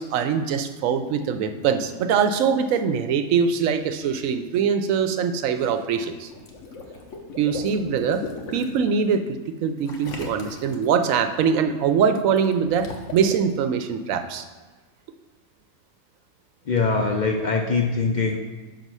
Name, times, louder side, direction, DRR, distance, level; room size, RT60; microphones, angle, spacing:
voice 1, 0.0-6.3 7.4-8.2 8.5-14.4, right 6 dB, 85° right, 8 dB, 1.0 m, -23 dB
Water / Liquid, 6.3-8.8 9.8-10.9 12.4-13.3, left 3 dB, 70° left, 1.2 m, -37 dB
voice 2, 16.6-18.4, left 4 dB, 55° left, 1 dB, 0.5 m, -22 dB
5.3 x 4.4 x 6.1 m, 1.3 s
omnidirectional pair, 1.4 m